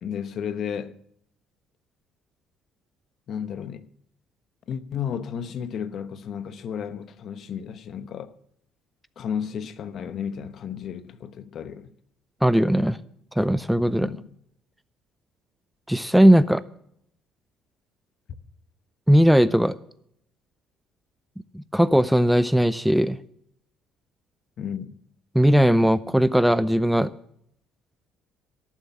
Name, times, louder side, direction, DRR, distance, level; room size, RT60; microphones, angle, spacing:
voice 1, 0.0-1.0 3.3-3.9 4.7-8.4 9.2-11.9 14.0-14.3 24.6-25.0, left 8 dB, 55° left, 1.0 m, -33 dB
voice 2, 12.4-13.0 13.4-14.1 15.9-16.6 19.1-19.7 21.5-23.2 25.3-27.1, equal, ahead, 0.4 m, -18 dB
17.5 x 7.3 x 7.1 m
cardioid pair, 115°, 0 cm